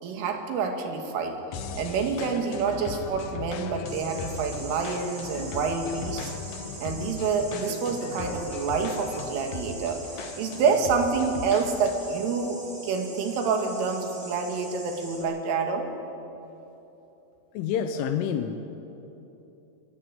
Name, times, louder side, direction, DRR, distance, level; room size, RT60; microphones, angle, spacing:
voice 1, 0.0-1.4 1.8-6.3 6.8-15.9, right 5 dB, 90° right, 4 dB, 4.7 m, -27 dB
sound 1, 1.5-12.2, left 5 dB, 70° left, 2.3 m, -38 dB
sound 2, 3.9-15.2, right 2 dB, 50° right, 7.8 m, -43 dB
voice 2, 17.5-18.6, left 8 dB, 85° left, 7 dB, 3.5 m, -28 dB
24.5 x 19.0 x 9.2 m, 3.0 s
omnidirectional pair, 5.5 m